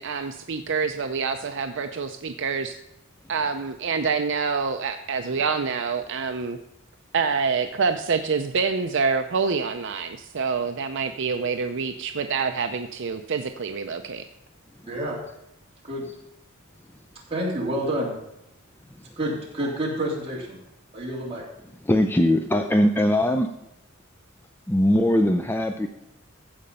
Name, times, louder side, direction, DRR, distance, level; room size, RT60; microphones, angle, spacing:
voice 1, 0.0-2.8 3.3-6.6 7.1-14.2, right 5 dB, 60° right, 6 dB, 0.6 m, -26 dB
voice 2, 14.9-15.2 15.8-16.1 17.3-18.2 19.2-20.6 20.9-21.4, right 1 dB, 30° right, -5 dB, 3.4 m, -28 dB
voice 3, 21.9-23.5 24.7-25.9, left 1 dB, 10° left, 7 dB, 0.4 m, -20 dB
15.0 x 5.2 x 5.5 m, 0.87 s
head